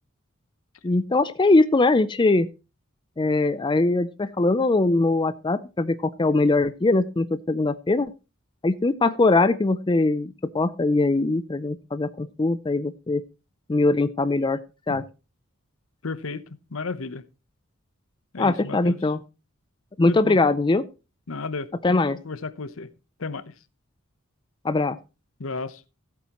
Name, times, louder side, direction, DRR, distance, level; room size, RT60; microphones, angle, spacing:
voice 1, 0.8-2.5 3.2-8.1 8.6-13.2 13.7-14.6 14.9-15.0 18.4-19.2 20.0-20.8 21.8-22.2 24.6-25.0, left 2 dB, 20° left, 0.4 m, -21 dB
voice 2, 16.0-16.4 16.7-17.2 18.3-19.0 20.1-20.6 21.3-22.9 23.2-23.5 25.4-25.8, left 4 dB, 70° left, 0.9 m, -33 dB
15.5 x 8.5 x 3.0 m
head